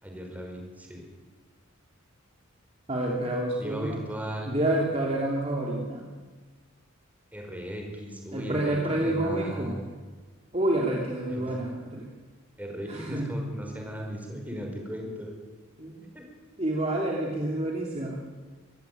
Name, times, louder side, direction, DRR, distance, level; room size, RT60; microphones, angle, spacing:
voice 1, 0.0-1.0 3.6-4.5 7.3-9.8 11.3-11.5 12.6-15.3 16.0-16.3, equal, 5° right, 1 dB, 5.1 m, -37 dB
voice 2, 2.9-4.0 4.5-6.1 8.3-9.8 10.5-12.1 12.9-13.4 15.8-16.0 16.6-18.2, right 1 dB, 30° right, -2 dB, 2.9 m, -28 dB
24.5 x 16.0 x 9.3 m, 1.4 s
head